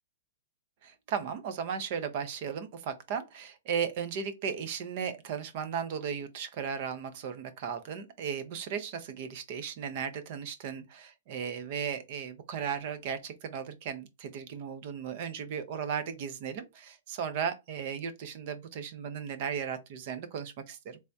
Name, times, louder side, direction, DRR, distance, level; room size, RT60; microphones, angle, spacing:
voice 1, 0.8-21.0, right 7 dB, 35° right, 0.5 m, -36 dB
3.3 x 3.3 x 2.6 m
hypercardioid pair, 175°, 0 cm